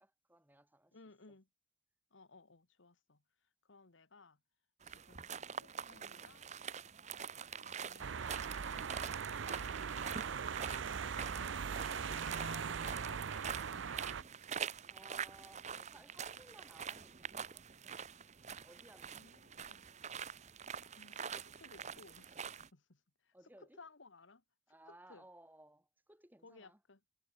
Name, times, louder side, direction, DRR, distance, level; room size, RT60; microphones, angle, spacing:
voice 1, 0.0-1.0 1.3-1.4 14.9-18.0 18.6-19.4 23.3-23.8 24.7-26.8, right 1 dB, 10° right, 3.6 m, -61 dB
voice 2, 0.9-1.5 2.1-3.2 3.7-4.4 4.8-6.5 7.6-8.2 11.0-11.6 11.9-13.6 19.1-19.8 21.0-23.3 23.8-24.4 24.9-25.2 26.4-27.0, left 3 dB, 75° left, 1.4 m, -60 dB
sound 1, 4.8-22.7, right 7 dB, 35° right, 0.8 m, -45 dB
sound 2, 6.2-19.0, right 1 dB, 55° right, 5.9 m, -81 dB
sound 3, 8.0-14.2, right 6 dB, 75° right, 0.6 m, -40 dB
head